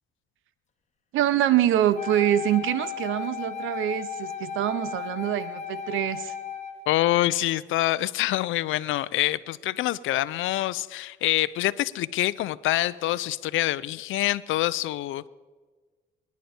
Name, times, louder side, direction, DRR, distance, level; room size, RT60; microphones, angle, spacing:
voice 1, 1.1-6.3, right 11 dB, 85° right, 0.8 m, -25 dB
Wind instrument woodwind instrument, 1.9-6.8, left 8 dB, 35° left, 1.6 m, -35 dB
voice 2, 6.9-15.3, left 15 dB, 80° left, 0.5 m, -26 dB
24.0 x 10.5 x 4.4 m
cardioid pair, 90°, 20 cm